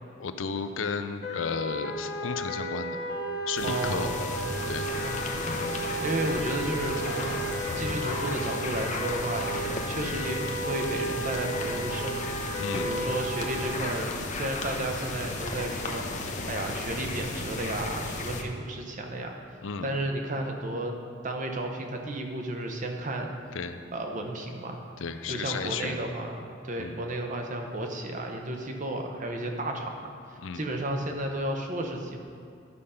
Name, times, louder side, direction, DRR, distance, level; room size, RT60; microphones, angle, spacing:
voice 1, 0.2-3.0 3.5-4.1 4.7-4.9 12.6-12.9 19.6-19.9 23.5-23.8 25.0-26.0 26.8-27.0 30.4-30.6, left 5 dB, 70° left, 9 dB, 0.5 m, -33 dB
sound 1, 1.2-13.7, right 1 dB, 55° left, 1.2 m, -34 dB
sound 2, 3.6-18.4, left 2 dB, 40° left, 0.8 m, -34 dB
voice 2, 3.6-4.3 5.0-7.5 7.8-12.2 12.7-16.1 16.5-19.4 19.8-20.9 21.2-23.3 23.9-24.8 25.3-32.2, right 1 dB, 40° right, 3 dB, 0.9 m, -33 dB
11.0 x 5.2 x 5.6 m, 2.3 s
head